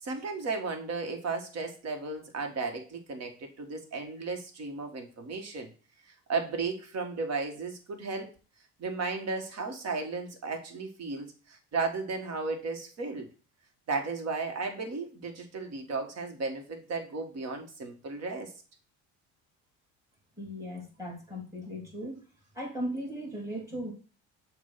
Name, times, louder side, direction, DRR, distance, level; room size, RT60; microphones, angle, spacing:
voice 1, 0.0-5.7 6.1-8.3 8.8-13.3 13.9-18.5, right 4 dB, 50° right, 4 dB, 1.6 m, -34 dB
voice 2, 20.4-22.2 22.5-23.9, equal, 10° right, 0 dB, 2.9 m, -37 dB
7.3 x 2.7 x 5.7 m, 0.36 s
cardioid pair, 110°, 32 cm